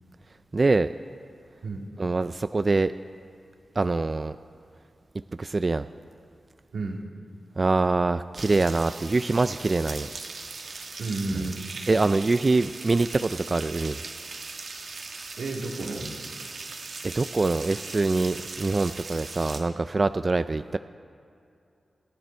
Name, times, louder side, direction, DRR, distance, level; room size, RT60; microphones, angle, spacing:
voice 1, 0.5-0.9 2.0-2.9 3.8-4.3 5.4-5.9 7.6-10.1 11.9-14.0 17.0-20.8, right 3 dB, 35° right, 11 dB, 0.3 m, -24 dB
sound 1, 8.4-19.6, right 4 dB, 65° right, 1.3 m, -39 dB
voice 2, 11.0-11.7 15.4-16.1, right 3 dB, 90° right, 0 dB, 1.9 m, -31 dB
28.0 x 9.5 x 4.4 m, 2.5 s
wide cardioid pair, 100°, 0 cm